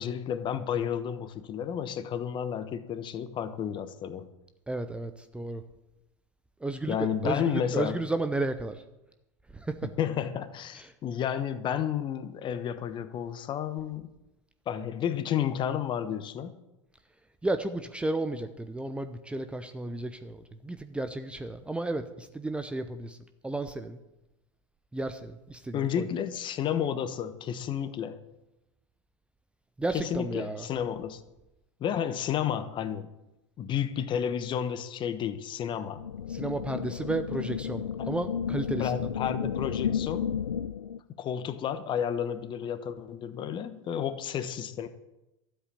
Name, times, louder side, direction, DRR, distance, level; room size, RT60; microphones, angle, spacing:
voice 1, 0.0-4.3 6.9-8.0 10.0-14.1 14.7-16.5 25.7-28.2 29.9-31.2 31.8-33.1 33.6-36.0 38.0-38.1 38.8-40.3 41.2-44.9, left 9 dB, 30° left, 12 dB, 1.1 m, -31 dB
voice 2, 4.7-5.6 6.6-8.8 9.5-9.9 10.7-11.0 17.4-24.0 24.9-26.1 29.8-30.7 36.3-39.1, right 2 dB, 5° right, 9 dB, 0.7 m, -33 dB
sound 1, 36.0-41.0, left 8 dB, 75° left, 0.4 m, -32 dB
12.5 x 8.1 x 8.7 m, 0.95 s
figure-of-eight pair, 90°, 16 cm